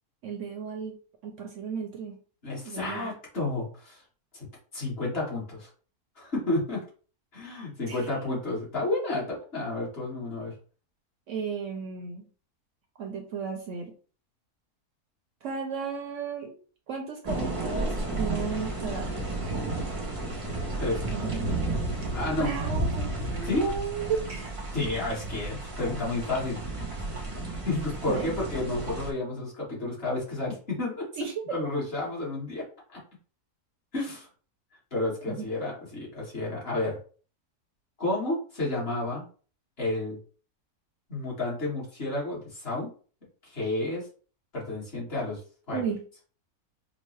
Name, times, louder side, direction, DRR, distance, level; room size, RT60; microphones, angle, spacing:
voice 1, 0.2-2.2 2.6-3.1 7.9-8.2 11.3-12.3 13.0-13.9 15.4-16.5 16.9-19.3 21.1-21.5 22.4-24.6 28.1-28.3 31.2-31.6 35.3-35.5 45.7-46.1, right 6 dB, 65° right, 4 dB, 0.8 m, -34 dB
voice 2, 2.4-4.0 4.3-4.5 4.7-5.7 6.2-6.8 7.3-10.5 20.8-21.1 22.1-22.5 23.4-23.6 24.7-26.8 27.6-31.1 31.5-32.6 32.9-33.0 33.9-34.3 34.9-37.0 38.0-39.3 39.8-40.2 41.1-42.9 43.4-44.1 44.5-45.4 45.7-45.8, left 2 dB, 45° left, -5 dB, 1.5 m, -31 dB
sound 1, 17.3-29.1, right 2 dB, 40° right, 0.4 m, -32 dB
5.1 x 2.0 x 3.1 m, 0.41 s
omnidirectional pair, 1.6 m